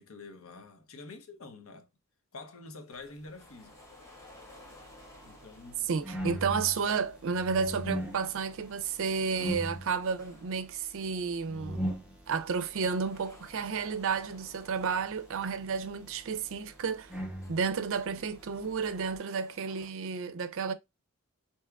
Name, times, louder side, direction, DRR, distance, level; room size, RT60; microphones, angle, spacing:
voice 1, 0.0-1.9 2.3-3.8 5.2-5.9 9.4-9.5 18.1-18.2, left 3 dB, 65° left, 0.7 m, -47 dB
sound 1, 3.3-6.2 6.8-11.6 12.2-19.9, left 1 dB, 15° left, 1.1 m, -58 dB
sound 2, 3.7-19.2, equal, 5° right, 0.7 m, -42 dB
voice 2, 5.8-11.8 12.3-17.1 17.5-20.7, right 5 dB, 65° right, 0.5 m, -32 dB
4.6 x 2.7 x 2.3 m
head